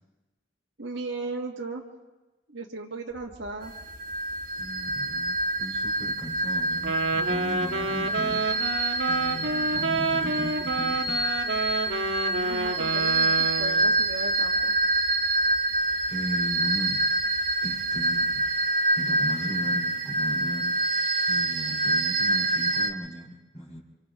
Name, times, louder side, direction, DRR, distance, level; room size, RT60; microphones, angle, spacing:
voice 1, 0.8-1.8 2.5-3.7 12.4-14.7, right 3 dB, 70° right, 0 dB, 1.7 m, -36 dB
sound 1, 3.1-18.6, left 1 dB, 85° left, 2.3 m, -52 dB
sound 2, 3.6-22.9, right 2 dB, 50° right, 1.5 m, -26 dB
voice 2, 4.6-8.5 9.1-11.2 16.1-17.1 17.6-18.5 19.0-20.8 21.3-23.8, equal, 35° left, -3 dB, 3.4 m, -37 dB
Wind instrument woodwind instrument, 6.8-13.9, right 3 dB, 90° right, 1.5 m, -29 dB
28.0 x 26.0 x 3.6 m, 1.1 s
head